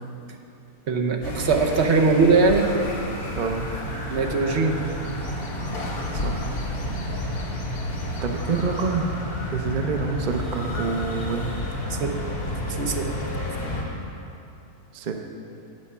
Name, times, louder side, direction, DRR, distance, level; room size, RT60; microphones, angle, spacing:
voice 1, 0.9-2.7 4.1-4.8 11.9-12.4 12.7-13.3, right 4 dB, 55° right, 2 dB, 1.0 m, -21 dB
sound 1, 1.2-13.8, left 1 dB, 70° left, 2.1 m, -30 dB
voice 2, 3.4-3.7 6.1-6.5 8.2-9.1 9.5-11.5 14.9-15.1, right 4 dB, 70° right, 4 dB, 0.4 m, -27 dB
8.4 x 8.2 x 5.5 m, 2.7 s
omnidirectional pair, 1.6 m